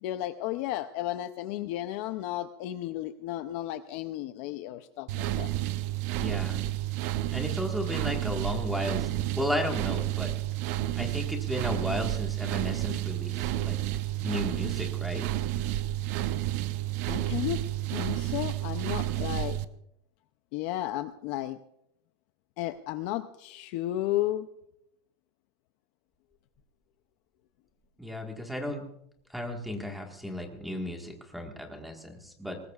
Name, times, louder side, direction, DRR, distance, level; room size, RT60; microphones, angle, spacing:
voice 1, 0.0-5.5 17.1-17.6 17.9-19.6 20.5-21.6 22.6-24.5, left 14 dB, 35° left, 10 dB, 0.5 m, -33 dB
sound 1, 5.1-19.6, right 14 dB, 40° right, 0.6 m, -31 dB
voice 2, 6.2-6.6 7.3-10.3 10.9-13.8 14.2-15.2 28.0-28.8 29.3-32.6, left 1 dB, ahead, 2 dB, 1.5 m, -34 dB
23.5 x 19.5 x 2.4 m, 0.75 s
supercardioid pair, 175°, 14 cm